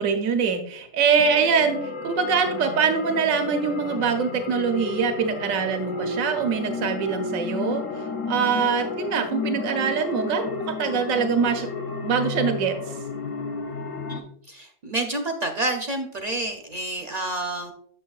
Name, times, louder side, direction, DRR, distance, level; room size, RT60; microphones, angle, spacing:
voice 1, 0.0-11.7 12.0-12.9, right 6 dB, 90° right, 6 dB, 1.1 m, -24 dB
sound 1, 1.2-14.2, left 4 dB, 75° left, 1.1 m, -32 dB
voice 2, 14.1-17.7, right 2 dB, 50° right, 4 dB, 0.5 m, -29 dB
7.4 x 6.8 x 2.3 m, 0.64 s
omnidirectional pair, 1.4 m